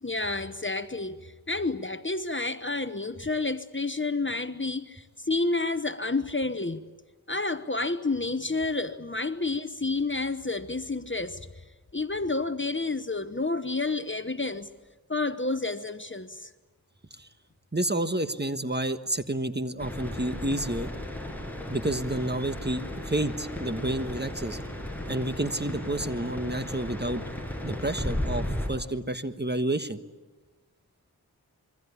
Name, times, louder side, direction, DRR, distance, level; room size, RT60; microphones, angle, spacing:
voice 1, 0.0-6.8 7.3-11.5 11.9-14.7 15.1-16.5, left 3 dB, 30° left, 1.0 m, -30 dB
voice 2, 17.7-20.9 21.7-24.6 25.1-27.2 27.6-30.0, right 1 dB, 25° right, 1.4 m, -30 dB
sound 1, 19.8-28.7, left 1 dB, 5° left, 6.4 m, -35 dB
26.5 x 23.0 x 8.4 m
wide cardioid pair, 45°, 39 cm